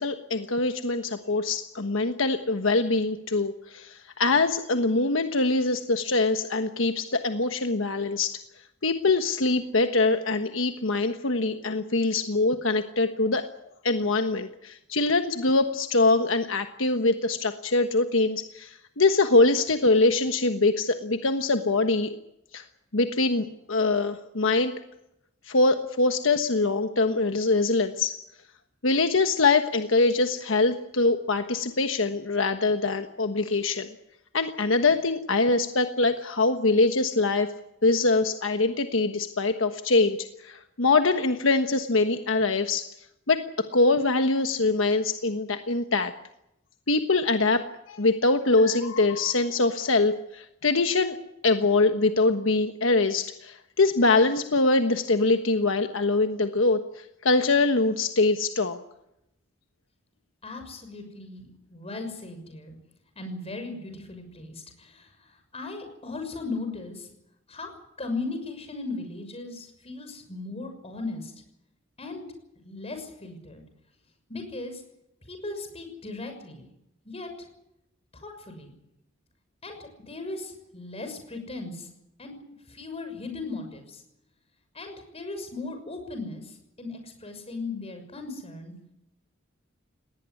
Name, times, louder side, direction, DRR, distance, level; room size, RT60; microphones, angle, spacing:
voice 1, 0.0-8.4 8.8-13.4 13.8-22.1 22.5-22.6 22.9-24.7 25.5-28.2 28.8-33.9 34.3-37.5 37.8-42.9 43.3-43.4 43.7-46.1 46.9-51.2 51.4-58.8, left 3 dB, 70° left, 7 dB, 1.3 m, -23 dB
voice 2, 60.4-62.7 63.1-67.1 67.5-67.7 68.0-71.3 72.0-72.2 72.6-73.6 74.3-74.8 75.3-76.7 77.0-77.5 78.2-78.7 79.6-81.9 82.2-82.3 82.7-84.0 84.7-88.7, left 3 dB, 30° left, 6 dB, 6.3 m, -37 dB
20.0 x 18.5 x 9.7 m, 0.84 s
head